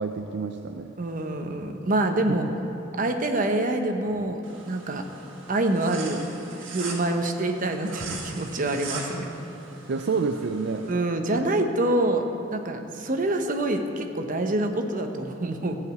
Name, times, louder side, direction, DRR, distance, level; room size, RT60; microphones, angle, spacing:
voice 1, 0.0-0.9 2.3-2.5 9.9-10.9, right 4 dB, 60° right, 5 dB, 0.4 m, -28 dB
voice 2, 1.0-2.5 3.0-4.4 4.7-5.0 5.5-6.2 6.7-9.3 10.9-12.2 12.5-15.8, right 2 dB, 45° right, 5 dB, 0.8 m, -26 dB
sound 1, 4.4-10.9, right 4 dB, 85° right, 1.6 m, -40 dB
14.0 x 5.0 x 8.0 m, 2.8 s
head